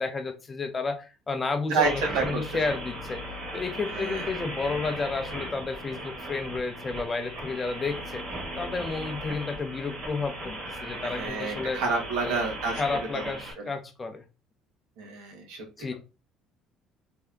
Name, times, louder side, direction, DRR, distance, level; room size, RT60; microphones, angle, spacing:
voice 1, 0.0-3.2 3.5-8.2 8.6-11.8 12.2-12.4 12.7-14.2 15.8-15.9, left 4 dB, 20° left, 8 dB, 0.6 m, -31 dB
voice 2, 1.7-2.4 3.9-4.3 11.0-12.8 13.1-13.2 15.0-15.6, right 4 dB, 85° right, 1 dB, 1.5 m, -29 dB
sound 1, 1.8-13.5, right 1 dB, 45° right, 1.6 m, -37 dB
3.4 x 2.7 x 3.4 m, 0.32 s
cardioid pair, 145°, 0 cm